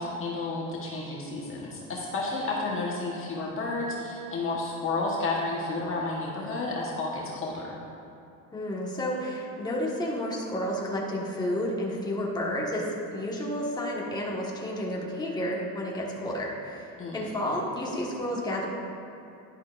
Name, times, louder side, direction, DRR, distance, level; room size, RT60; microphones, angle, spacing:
voice 1, 0.0-7.7 17.0-17.2, left 3 dB, 35° left, -3 dB, 1.3 m, -31 dB
voice 2, 8.5-18.7, left 1 dB, 10° left, -3 dB, 1.5 m, -31 dB
11.5 x 11.0 x 2.5 m, 2.8 s
cardioid pair, 135°, 35 cm